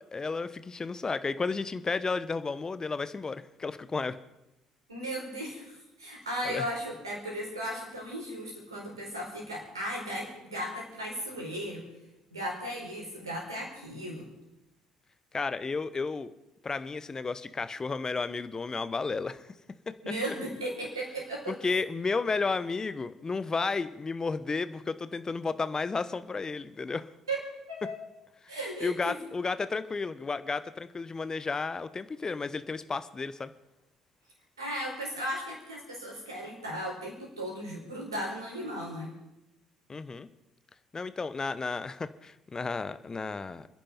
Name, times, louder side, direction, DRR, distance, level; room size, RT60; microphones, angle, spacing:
voice 1, 0.0-4.2 6.4-6.7 15.3-16.3 16.6-19.5 19.9-20.0 21.5-27.1 28.8-33.5 39.9-40.3 40.9-43.7, left 4 dB, 25° left, 14 dB, 1.0 m, -32 dB
voice 2, 4.9-11.8 12.3-14.3 20.0-21.6 27.3-28.0 28.5-29.2 34.6-39.1, equal, 85° right, -1 dB, 4.5 m, -36 dB
29.0 x 10.5 x 4.4 m, 0.93 s
figure-of-eight pair, 55°, 2 cm